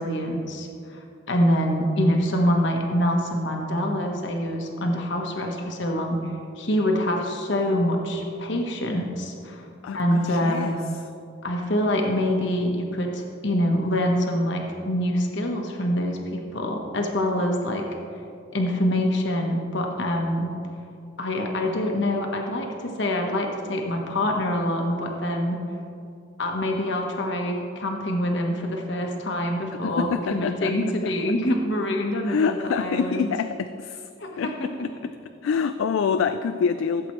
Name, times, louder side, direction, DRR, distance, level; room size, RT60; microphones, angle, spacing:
voice 1, 0.0-9.7 9.9-10.8 11.4-17.8 18.5-20.5 21.2-25.6 26.4-33.3 34.2-34.9, equal, 65° left, 2 dB, 1.2 m, -25 dB
voice 2, 9.8-10.8 29.8-30.7 31.0-31.1 32.2-34.1 34.4-34.7 35.4-37.1, left 6 dB, 80° left, 10 dB, 0.3 m, -26 dB
16.0 x 7.7 x 3.2 m, 2.5 s
head